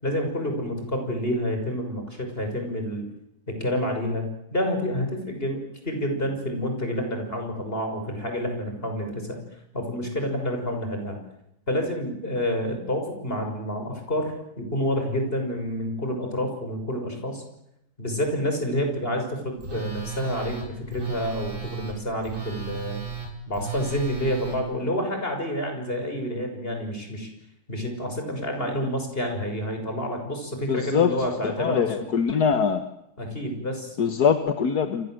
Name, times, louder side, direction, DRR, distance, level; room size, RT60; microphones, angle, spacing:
voice 1, 0.0-3.1 3.5-9.4 9.7-11.2 11.7-17.4 18.0-23.0 23.5-27.3 27.7-31.9 33.2-34.0, equal, 35° left, 4 dB, 6.4 m, -28 dB
Telephone, 19.6-24.6, right 7 dB, 45° right, 5.8 m, -35 dB
voice 2, 30.7-31.1 31.4-32.8 34.0-35.1, left 6 dB, 70° left, 8 dB, 1.9 m, -23 dB
28.0 x 26.5 x 7.8 m, 0.81 s
omnidirectional pair, 1.8 m